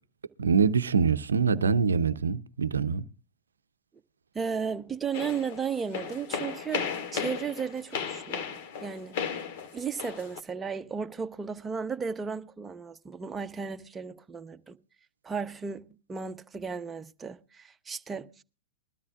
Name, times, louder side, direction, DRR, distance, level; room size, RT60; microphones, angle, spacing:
voice 1, 0.4-3.1, right 5 dB, 85° right, 0.5 m, -24 dB
voice 2, 4.3-6.9 7.1-9.2 9.7-14.8 15.2-18.4, right 6 dB, 15° right, 0.8 m, -35 dB
Steps in Empty Room on Concrete, 5.1-10.4, left 7 dB, 55° left, 1.8 m, -35 dB
21.5 x 13.0 x 2.4 m
hypercardioid pair, 100°, 0 cm